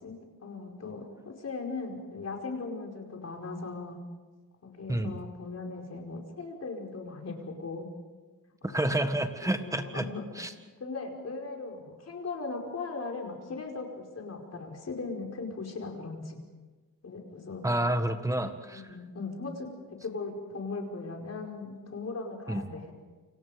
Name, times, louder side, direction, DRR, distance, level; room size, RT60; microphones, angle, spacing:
voice 1, 0.0-4.0 4.6-7.9 8.6-9.1 9.4-10.4 10.8-16.4 17.0-17.7 18.7-22.9, left 3 dB, 45° left, 1 dB, 5.2 m, -38 dB
voice 2, 8.6-10.1 10.4-10.5 17.6-18.8 22.5-22.6, right 1 dB, 10° right, 7 dB, 1.8 m, -29 dB
29.0 x 27.0 x 5.2 m, 1.3 s
wide cardioid pair, 150°, 36 cm